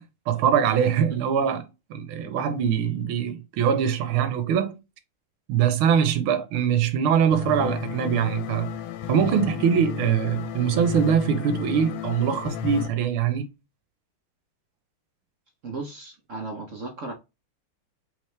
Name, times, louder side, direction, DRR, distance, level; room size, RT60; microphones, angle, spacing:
voice 1, 0.0-4.8 5.5-8.7 9.1-13.5, right 8 dB, 80° right, 1.6 m, -23 dB
sound 1, 7.3-12.9, left 8 dB, 85° left, 1.5 m, -32 dB
voice 2, 15.6-17.1, right 3 dB, 50° right, 0.9 m, -35 dB
4.8 x 3.5 x 3.2 m
omnidirectional pair, 2.3 m